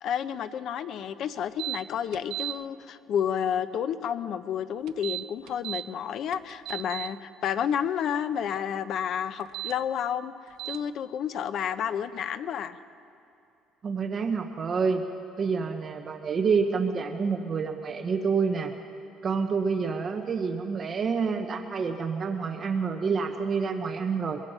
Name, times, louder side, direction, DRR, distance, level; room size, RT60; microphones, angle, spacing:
voice 1, 0.0-12.8, left 8 dB, 50° left, 12 dB, 0.7 m, -30 dB
sound 1, 1.6-1.8 2.1-2.5 4.9-5.8 6.3-7.1 9.4-9.7 10.6-10.8, right 18 dB, 70° right, 0.5 m, -34 dB
voice 2, 13.8-15.0 15.4-18.7 19.2-24.4, right 5 dB, 30° right, 5 dB, 1.0 m, -28 dB
22.5 x 22.0 x 5.5 m, 2.7 s
cardioid pair, 155°, 0 cm